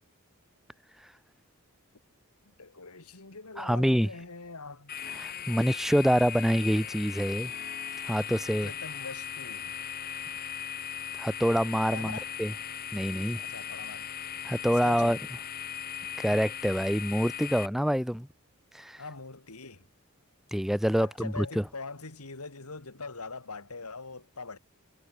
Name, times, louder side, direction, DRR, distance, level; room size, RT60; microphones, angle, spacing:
voice 1, 2.6-4.9 8.6-9.8 11.9-12.3 13.4-14.1 14.8-15.2 19.0-19.9 21.0-24.6, left 3 dB, 90° left, 2.5 m, -42 dB
voice 2, 3.6-4.1 5.2-7.5 8.0-8.7 11.2-12.5 12.9-13.4 14.4-15.2 16.2-18.3 18.7-19.0 20.5-21.6, equal, ahead, 0.9 m, -26 dB
sound 1, 4.9-17.7, left 8 dB, 40° left, 5.3 m, -38 dB
head